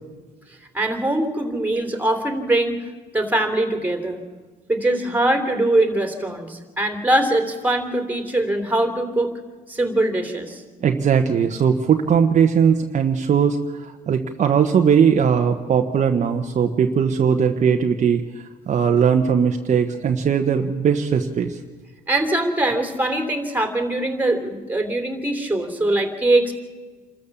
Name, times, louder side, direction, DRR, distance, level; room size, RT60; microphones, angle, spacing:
voice 1, 0.7-2.8 3.1-4.2 4.7-9.4 9.7-10.6 22.1-26.5, right 1 dB, 10° right, 5 dB, 3.2 m, -22 dB
voice 2, 10.8-21.6, right 7 dB, 45° right, 4 dB, 1.1 m, -19 dB
27.5 x 13.5 x 7.2 m, 1.4 s
cardioid pair, 110°, 17 cm